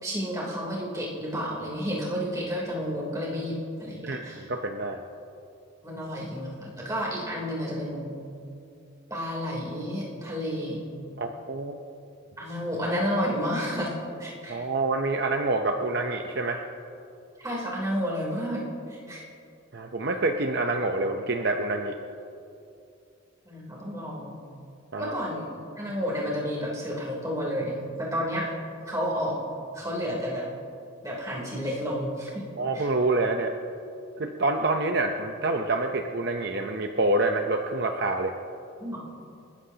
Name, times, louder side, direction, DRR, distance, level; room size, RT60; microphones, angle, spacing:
voice 1, 0.0-4.5 5.8-8.2 9.1-10.9 12.4-13.9 14.2-14.6 17.4-19.2 23.4-24.4 25.0-25.5 25.8-28.5 28.9-29.4 29.7-30.5 31.0-32.4 32.7-32.9 38.8-39.0, equal, 15° right, -4 dB, 3.2 m, -31 dB
voice 2, 4.0-5.0 11.2-11.7 14.5-16.6 19.7-21.9 24.9-25.1 32.6-33.5 34.2-38.3, right 2 dB, 55° right, 4 dB, 0.7 m, -27 dB
28.0 x 13.5 x 2.9 m, 2.6 s
head